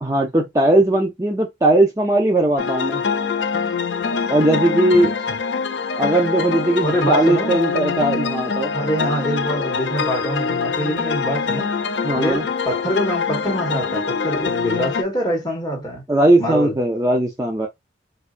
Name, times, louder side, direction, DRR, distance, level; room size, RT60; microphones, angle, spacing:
voice 1, 0.0-3.0 4.3-5.1 6.0-8.7 12.0-12.4 16.1-17.7, right 1 dB, 15° right, 0.5 m, -18 dB
sound 1, 2.6-15.0, left 5 dB, 70° left, 0.5 m, -24 dB
voice 2, 4.9-5.4 6.8-7.6 8.1-8.2 8.7-11.7 12.1-16.0 16.4-16.8, equal, 20° left, 1.6 m, -24 dB
4.4 x 2.6 x 2.5 m
head